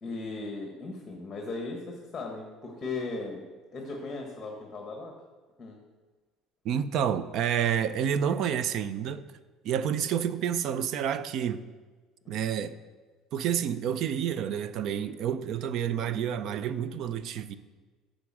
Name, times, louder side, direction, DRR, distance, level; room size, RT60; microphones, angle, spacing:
voice 1, 0.0-3.4 3.7-5.1 5.6-5.8 12.2-12.3, left 3 dB, 25° left, 1.3 m, -37 dB
voice 2, 6.6-9.2 9.6-11.6 12.3-12.8 13.3-17.6, right 9 dB, 55° right, 0.5 m, -29 dB
8.3 x 5.2 x 7.4 m
cardioid pair, 140°, 0 cm